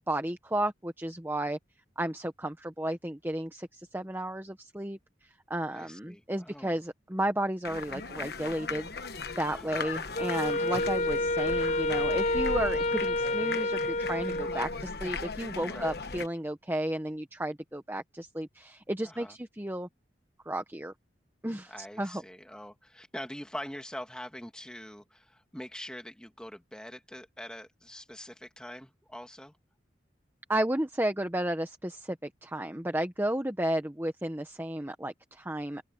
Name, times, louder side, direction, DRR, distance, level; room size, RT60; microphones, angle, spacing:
voice 1, 0.1-1.6 2.0-8.9 9.4-19.9 20.5-20.9 21.4-22.2 30.5-35.8, right 1 dB, 10° right, 1.0 m, -33 dB
voice 2, 5.7-6.8 9.5-9.8 15.7-16.0 19.0-19.3 21.7-29.6, equal, 5° left, 2.6 m, -44 dB
sound 1, 7.6-16.3, left 4 dB, 60° left, 1.3 m, -38 dB
Wind instrument woodwind instrument, 10.2-14.8, left 2 dB, 40° left, 0.8 m, -29 dB
open air
head